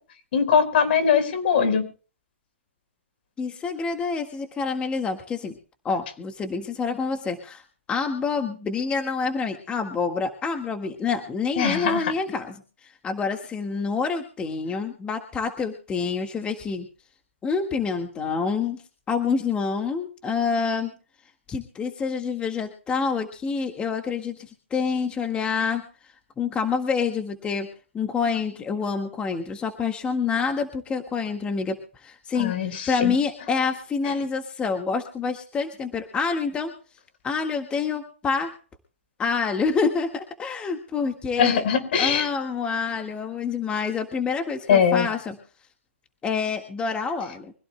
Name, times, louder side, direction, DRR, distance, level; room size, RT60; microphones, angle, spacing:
voice 1, 0.3-1.9 11.6-12.1 32.3-33.2 41.4-42.3 44.7-45.1, left 7 dB, 55° left, 9 dB, 4.5 m, -21 dB
voice 2, 3.4-5.5 5.8-7.6 7.9-16.9 17.4-18.8 19.1-20.9 21.5-27.7 27.9-36.7 37.2-38.5 39.2-41.6 42.0-45.4 46.2-47.5, left 5 dB, 15° left, 5 dB, 1.7 m, -27 dB
25.0 x 16.5 x 2.2 m, 0.38 s
hypercardioid pair, 135°, 7 cm